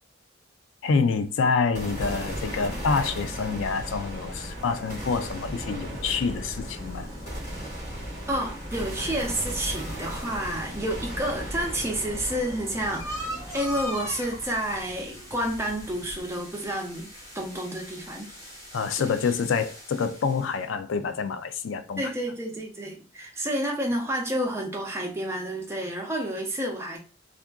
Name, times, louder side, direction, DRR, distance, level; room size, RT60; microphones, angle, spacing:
voice 1, 0.8-7.1 18.7-22.1, left 5 dB, 85° left, 0.4 m, -27 dB
sound 1, 1.7-16.0, equal, 45° left, 1.7 m, -36 dB
sound 2, 3.6-20.6, equal, 15° left, 1.5 m, -43 dB
voice 2, 8.3-18.3 19.0-19.1 22.0-27.0, right 1 dB, 15° right, 0.7 m, -30 dB
sound 3, 10.8-16.2, equal, 60° left, 1.4 m, -48 dB
3.6 x 2.5 x 2.2 m
head